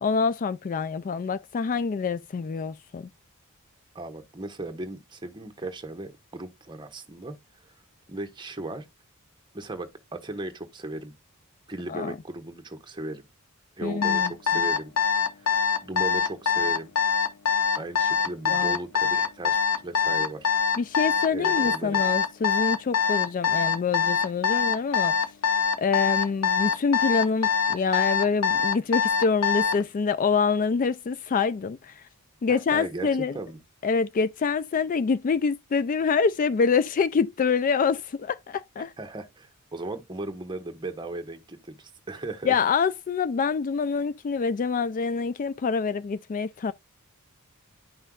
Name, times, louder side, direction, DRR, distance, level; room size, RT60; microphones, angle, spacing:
voice 1, 0.0-3.1 11.9-12.1 13.8-14.3 18.5-18.8 20.8-25.1 25.8-32.0 32.4-33.4 33.8-38.9 42.5-46.7, left 5 dB, 35° left, 0.3 m, -26 dB
voice 2, 3.9-7.3 8.1-8.8 9.5-11.1 11.7-13.3 13.8-14.9 15.4-15.5 15.8-16.9 17.8-20.7 21.3-22.0 32.5-33.1 33.3-33.6 38.8-42.6, right 2 dB, 20° right, 1.2 m, -37 dB
Alarm, 14.0-29.8, left 6 dB, 75° left, 1.0 m, -23 dB
11.0 x 5.5 x 2.4 m
head